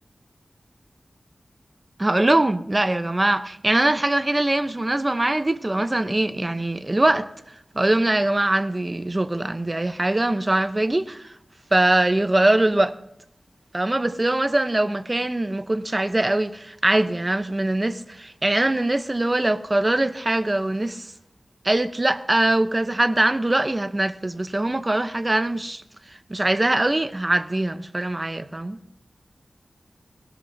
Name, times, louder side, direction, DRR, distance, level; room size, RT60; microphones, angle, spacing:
voice 1, 2.0-7.3 7.7-11.3 11.7-12.9 13.7-21.1 21.6-25.8 26.1-28.8, right 1 dB, 25° right, 0.7 m, -22 dB
19.0 x 17.0 x 2.7 m
wide cardioid pair, 80°, 0 cm